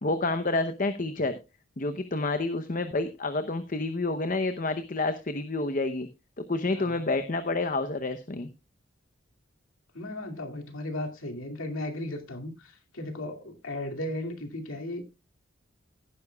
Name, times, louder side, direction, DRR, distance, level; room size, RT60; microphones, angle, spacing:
voice 1, 0.0-1.3 1.8-6.1 6.4-8.5, left 2 dB, 40° left, 0.8 m, -29 dB
voice 2, 9.9-15.1, left 1 dB, 85° left, 2.4 m, -36 dB
17.5 x 9.7 x 2.3 m
head